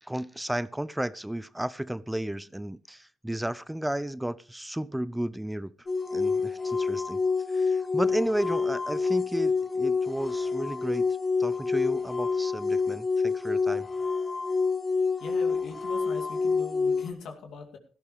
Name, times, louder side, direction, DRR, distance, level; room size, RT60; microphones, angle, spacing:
voice 1, 0.0-5.7 6.1-7.2 7.5-11.1 11.4-13.9, right 1 dB, 10° right, 0.6 m, -33 dB
sound 1, 5.9-17.1, left 4 dB, 35° left, 2.1 m, -27 dB
voice 2, 15.2-17.8, left 4 dB, 70° left, 2.4 m, -41 dB
17.0 x 12.0 x 3.2 m
hypercardioid pair, 50°, 0 cm